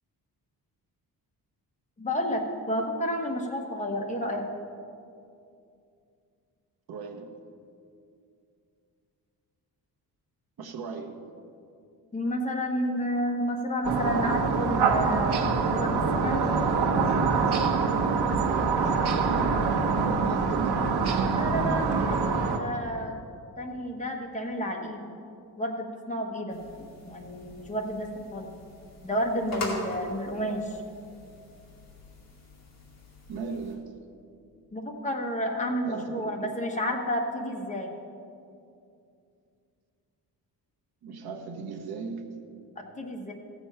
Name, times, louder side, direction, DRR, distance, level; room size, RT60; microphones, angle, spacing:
voice 1, 2.0-4.4 12.1-15.3 15.7-16.5 19.9-20.1 21.3-22.3 22.6-23.2 23.6-25.0 25.6-26.6 27.0-28.5 29.0-30.8 34.7-37.9 43.0-43.3, equal, 20° left, 1 dB, 1.2 m, -31 dB
voice 2, 6.9-7.4 10.6-11.3 18.5-19.6 20.0-21.0 30.4-30.7 33.3-34.0 35.8-36.5 41.0-42.4, right 4 dB, 70° right, 4 dB, 1.2 m, -37 dB
sound 1, 13.8-22.6, right 4 dB, 90° right, 1.1 m, -25 dB
sound 2, 26.5-33.7, left 1 dB, 45° left, 2.2 m, -42 dB
15.0 x 7.1 x 5.7 m, 2.5 s
wide cardioid pair, 170°, 38 cm